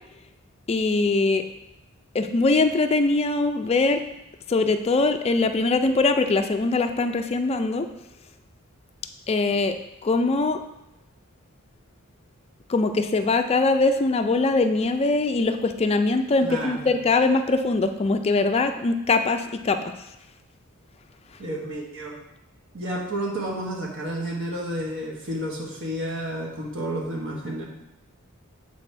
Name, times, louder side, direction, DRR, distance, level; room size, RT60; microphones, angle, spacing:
voice 1, 0.7-1.4 2.1-4.0 4.5-7.9 9.3-9.7 10.0-10.6 12.7-19.9, left 3 dB, 30° left, 7 dB, 0.4 m, -22 dB
voice 2, 16.4-16.9 21.4-22.2 22.7-27.7, right 1 dB, 60° right, -1 dB, 1.2 m, -31 dB
7.6 x 4.0 x 3.3 m, 0.88 s
head